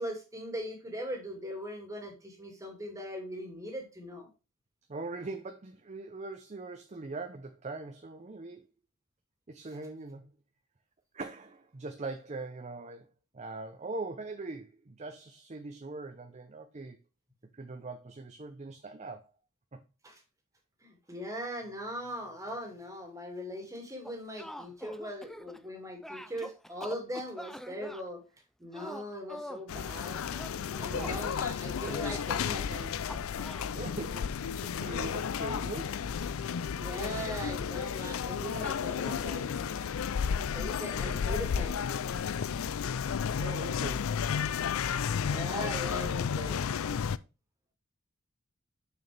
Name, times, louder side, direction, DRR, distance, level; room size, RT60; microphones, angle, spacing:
voice 1, 0.0-4.3 20.0-20.2 20.8-28.2 28.6-30.2 30.8-33.0 36.8-39.5 40.2-41.8 45.3-47.0, equal, 15° right, 2.2 m, -40 dB
voice 2, 4.9-8.7 9.5-10.3 11.1-13.1 13.3-17.0 17.5-19.3 19.7-19.8 30.9-31.3 33.7-34.3 34.6-36.0 38.6-38.8 39.8-39.9 43.3-44.1, right 3 dB, 35° right, 0.7 m, -41 dB
sound 1, 24.0-25.7 26.0-28.0 28.7-29.7 30.3-31.2 31.8-32.2 33.1-33.7, equal, ahead, 0.3 m, -44 dB
sound 2, 29.7-47.2, left 7 dB, 85° left, 0.4 m, -32 dB
6.8 x 6.4 x 3.3 m
head